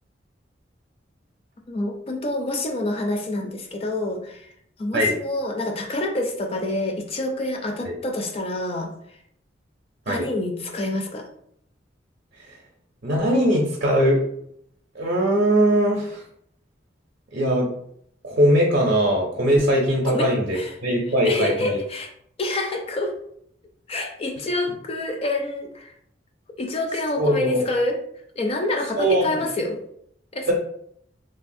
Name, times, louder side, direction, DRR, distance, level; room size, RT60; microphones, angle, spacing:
voice 1, 1.7-4.5 4.8-9.2 10.1-11.3 20.0-20.8 21.2-22.1 22.4-23.1 23.9-25.9 26.6-28.0 28.3-29.8 30.3-30.5, left 2 dB, 30° left, 3 dB, 0.4 m, -27 dB
voice 2, 13.0-14.2 14.9-16.2 17.3-17.7 18.2-21.8 27.2-27.6 29.0-29.2, equal, 55° right, -1 dB, 0.5 m, -20 dB
3.2 x 2.0 x 2.5 m, 0.69 s
head